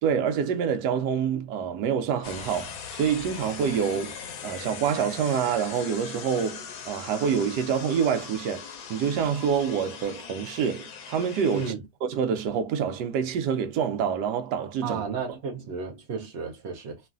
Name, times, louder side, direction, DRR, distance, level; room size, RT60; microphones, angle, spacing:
voice 1, 0.0-4.2 4.4-11.7 12.0-15.0, right 7 dB, 90° right, 1.2 m, -27 dB
sound 1, 2.2-11.7, left 6 dB, 70° left, 1.0 m, -40 dB
voice 2, 14.8-17.0, right 5 dB, 60° right, 0.7 m, -33 dB
3.1 x 2.4 x 2.3 m
omnidirectional pair, 1.7 m